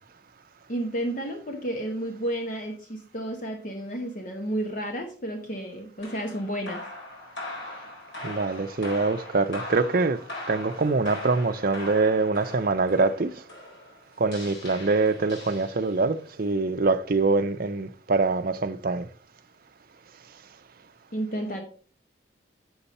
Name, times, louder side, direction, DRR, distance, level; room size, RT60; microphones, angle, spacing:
voice 1, 0.7-6.8 21.1-21.6, right 1 dB, 45° left, 1.0 m, -31 dB
sound 1, 6.0-16.2, left 1 dB, 70° left, 4.3 m, -40 dB
voice 2, 8.2-10.2 10.5-13.3 14.2-19.1, right 3 dB, 50° right, 0.6 m, -24 dB
8.0 x 6.8 x 4.2 m
head